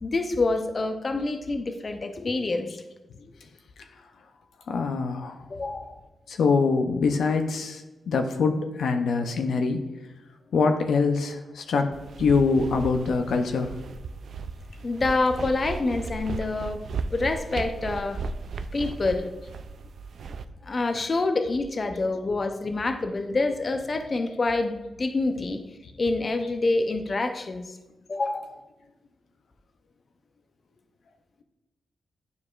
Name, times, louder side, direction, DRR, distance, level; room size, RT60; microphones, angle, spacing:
voice 1, 0.0-2.7 5.5-6.0 14.8-16.8 17.1-18.2 18.7-19.3 20.6-25.6 26.0-27.8 28.1-28.6, left 3 dB, 45° left, 7 dB, 0.6 m, -27 dB
voice 2, 4.7-5.4 6.3-9.8 10.5-13.7 17.8-17.9, left 4 dB, 85° left, 5 dB, 0.6 m, -24 dB
sound 1, 11.9-20.4, right 4 dB, 75° right, 0.3 m, -36 dB
9.6 x 4.7 x 2.4 m, 1.1 s
cardioid pair, 75°, 0 cm